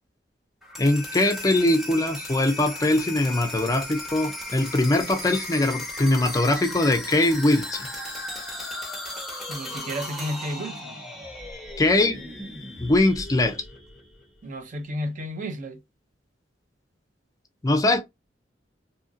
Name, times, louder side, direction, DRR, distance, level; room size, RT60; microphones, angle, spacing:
sound 1, 0.6-14.4, left 1 dB, ahead, 1.0 m, -36 dB
voice 1, 0.8-7.9 11.8-12.2 12.8-13.6 17.6-18.0, left 2 dB, 20° left, 0.4 m, -22 dB
voice 2, 9.5-11.0 14.4-15.8, equal, 45° right, 0.5 m, -32 dB
2.7 x 2.6 x 2.5 m
head